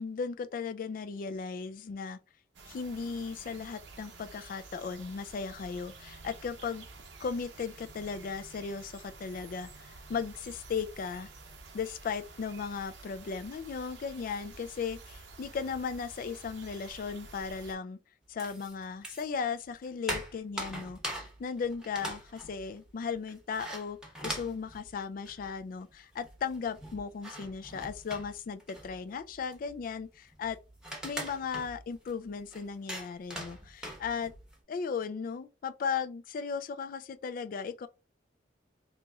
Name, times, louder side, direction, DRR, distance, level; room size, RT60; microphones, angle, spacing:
voice 1, 0.0-2.2 2.7-6.8 7.2-11.3 11.7-18.0 18.3-24.0 24.2-30.6 31.0-34.3 34.7-37.9, left 5 dB, 50° left, 0.3 m, -36 dB
sound 1, 2.5-17.7, right 3 dB, 90° right, 0.8 m, -50 dB
sound 2, 18.4-19.4 19.7-25.6 25.9-26.0 26.2-34.6, right 1 dB, 5° right, 0.9 m, -42 dB
4.0 x 3.0 x 2.3 m
head